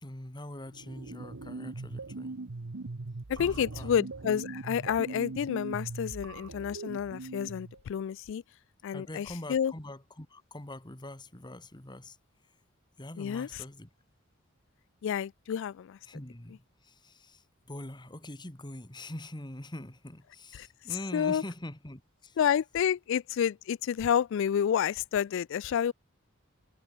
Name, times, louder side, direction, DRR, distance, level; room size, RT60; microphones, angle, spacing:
voice 1, 0.0-2.4 3.4-3.9 8.9-12.2 12.4-12.5 13.0-13.9 16.1-22.4, left 1 dB, 20° left, 1.9 m, -43 dB
sound 1, 0.7-7.8, right 3 dB, 75° right, 1.0 m, -41 dB
voice 2, 3.3-8.4 8.8-9.7 13.2-13.5 15.0-16.0 20.5-20.7 21.1-21.4 22.4-25.9, left 8 dB, 65° left, 0.3 m, -29 dB
head